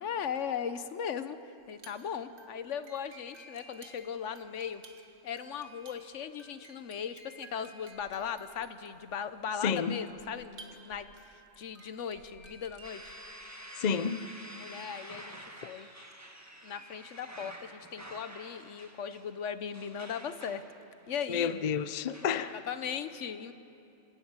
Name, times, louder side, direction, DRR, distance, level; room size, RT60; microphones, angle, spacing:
voice 1, 0.0-4.8 5.2-13.1 14.6-15.9 16.6-20.6 21.1-21.5 22.7-23.5, left 7 dB, 75° left, 12 dB, 1.2 m, -38 dB
sound 1, 1.6-13.2, right 2 dB, 60° right, 2.0 m, -55 dB
voice 2, 9.6-10.0 13.8-14.2 15.6-15.7 21.3-22.5, left 7 dB, 45° left, 12 dB, 0.6 m, -30 dB
sound 2, 12.8-22.6, right 1 dB, 15° right, 1.4 m, -49 dB
27.0 x 13.0 x 8.9 m, 2.7 s
omnidirectional pair, 1.2 m